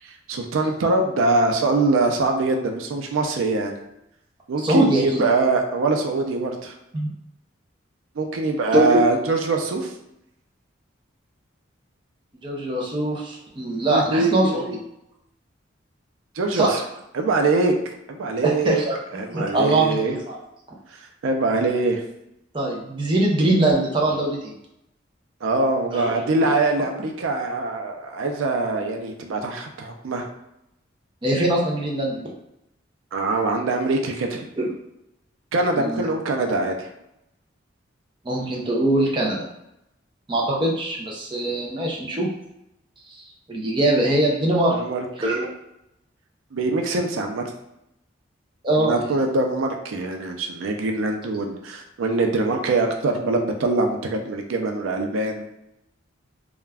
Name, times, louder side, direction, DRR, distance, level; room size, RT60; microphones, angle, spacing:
voice 1, 0.3-3.7 4.5-6.7 8.2-9.9 13.9-14.8 16.4-16.8 17.1-17.7 18.1-18.8 19.1-20.1 21.2-22.0 25.4-30.3 33.1-34.5 35.5-36.9 44.7-45.0 46.5-47.4 48.8-55.4, right 3 dB, 85° right, 3 dB, 0.4 m, -23 dB
voice 2, 4.6-5.2 6.9-7.1 8.7-9.0 12.4-14.6 16.5-16.8 18.4-19.0 19.3-20.4 22.5-24.5 25.9-26.5 31.2-32.2 34.6-34.7 35.8-36.1 38.2-39.5 40.3-42.3 43.5-44.8 45.2-45.5 48.6-49.0, right 1 dB, 25° right, -3 dB, 0.5 m, -22 dB
2.4 x 2.2 x 3.3 m, 0.83 s
head